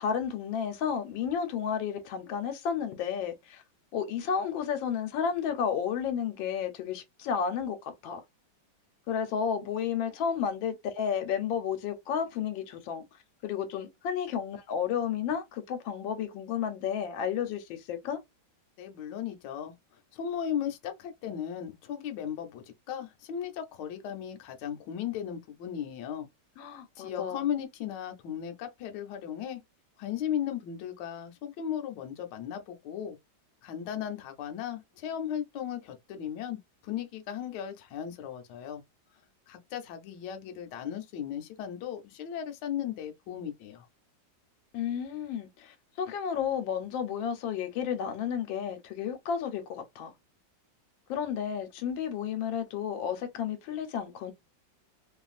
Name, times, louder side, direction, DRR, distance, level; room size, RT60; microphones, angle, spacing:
voice 1, 0.0-3.6 3.9-8.2 9.1-13.0 13.4-18.2 26.6-27.4 44.7-50.1 51.1-54.3, left 7 dB, 90° left, 1.4 m, -32 dB
voice 2, 18.8-19.7 20.1-26.3 27.0-29.6 30.0-33.2 33.6-38.8 39.5-43.9, left 9 dB, 75° left, 1.2 m, -36 dB
3.1 x 2.3 x 2.4 m
omnidirectional pair, 2.1 m